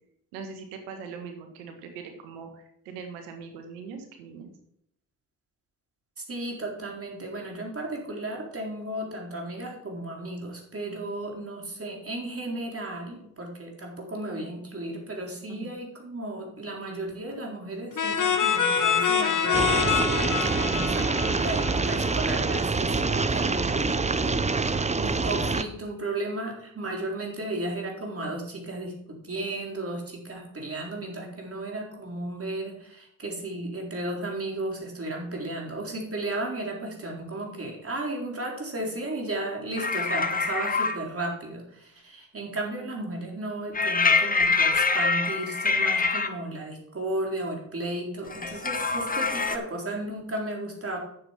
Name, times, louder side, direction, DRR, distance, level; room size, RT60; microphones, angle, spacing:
voice 1, 0.3-4.5 15.5-15.7, right 5 dB, 85° right, 5 dB, 1.6 m, -41 dB
voice 2, 6.3-51.0, right 1 dB, 35° right, 0 dB, 4.2 m, -34 dB
sound 1, 18.0-22.5, left 7 dB, 50° left, 1.6 m, -26 dB
sound 2, 19.5-25.6, right 3 dB, 15° right, 0.8 m, -26 dB
sound 3, 39.8-41.0 43.7-46.3 48.3-49.6, left 4 dB, 20° left, 1.3 m, -25 dB
9.5 x 7.3 x 5.3 m, 0.74 s
hypercardioid pair, 45°, 39 cm